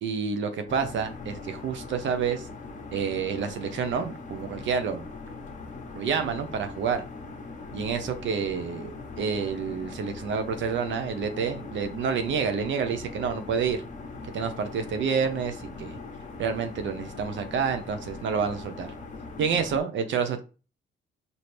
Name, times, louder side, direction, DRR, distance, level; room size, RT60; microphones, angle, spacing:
voice 1, 0.0-2.5 2.9-5.0 5.9-7.0 7.7-13.8 14.3-16.0 16.4-18.9 19.4-20.4, right 6 dB, 70° right, 8 dB, 0.8 m, -28 dB
sound 1, 0.7-19.8, left 3 dB, 40° left, 1.0 m, -41 dB
4.3 x 2.7 x 3.3 m, 0.33 s
cardioid pair, 90°, 20 cm